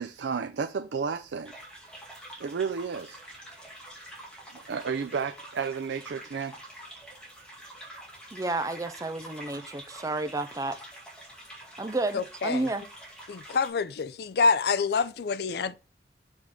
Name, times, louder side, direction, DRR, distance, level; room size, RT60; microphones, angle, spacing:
voice 1, 0.0-1.5 2.4-3.4 4.5-6.6, right 6 dB, 80° right, 0.4 m, -32 dB
sound 1, 1.4-13.7, right 1 dB, 5° left, 2.2 m, -46 dB
voice 2, 8.3-10.8 11.8-12.8, right 2 dB, 20° right, 0.5 m, -31 dB
voice 3, 12.1-12.7 13.3-15.7, left 4 dB, 60° left, 0.4 m, -27 dB
6.3 x 5.3 x 3.6 m
head